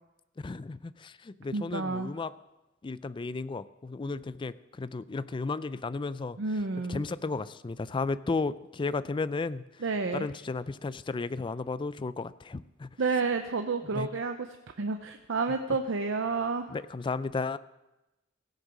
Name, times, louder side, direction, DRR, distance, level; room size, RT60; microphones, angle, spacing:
voice 1, 0.4-2.3 2.8-6.4 6.9-9.8 10.1-12.9 13.9-14.1 16.7-17.6, left 3 dB, 25° left, 15 dB, 0.4 m, -34 dB
voice 2, 1.5-2.1 6.4-7.0 9.8-10.3 13.0-14.4 14.8-16.8, right 4 dB, 70° right, 7 dB, 0.6 m, -30 dB
16.0 x 8.0 x 6.0 m, 1.0 s
head